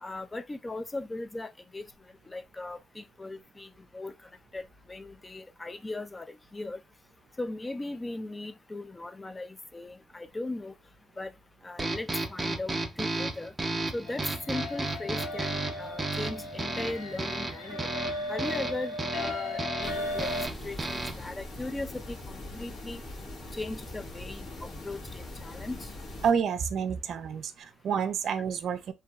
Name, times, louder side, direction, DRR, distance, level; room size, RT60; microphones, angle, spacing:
voice 1, 0.0-1.8 2.3-4.1 4.5-6.8 7.4-10.7 11.2-11.3 11.6-13.5 13.9-17.9 18.3-20.3 20.6-23.0 23.5-25.9, left 2 dB, 20° left, 0.3 m, -38 dB
sound 1, 11.8-21.3, right 2 dB, 20° right, 0.6 m, -34 dB
sound 2, 14.1-20.5, left 2 dB, 85° left, 1.1 m, -36 dB
sound 3, 19.8-26.3, left 2 dB, 65° left, 1.2 m, -42 dB
voice 2, 26.2-28.9, right 7 dB, 65° right, 0.4 m, -29 dB
2.9 x 2.6 x 2.3 m
cardioid pair, 90°, 0 cm